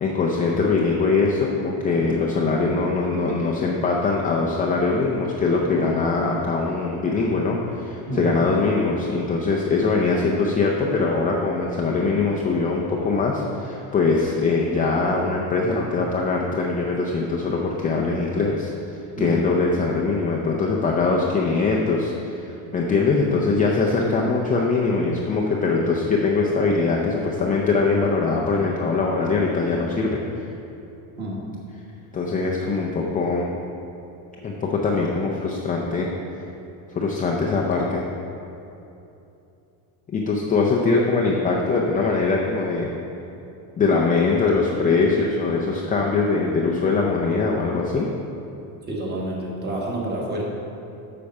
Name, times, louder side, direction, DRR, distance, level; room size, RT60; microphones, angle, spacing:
voice 1, 0.0-18.7 19.2-30.2 32.1-33.5 34.4-36.1 36.9-38.1 40.1-42.9 43.8-48.1, left 4 dB, 20° left, -2 dB, 0.5 m, -22 dB
voice 2, 48.9-50.4, right 1 dB, 20° right, -3 dB, 1.5 m, -28 dB
8.4 x 5.8 x 5.3 m, 2.8 s
cardioid pair, 145°, 45 cm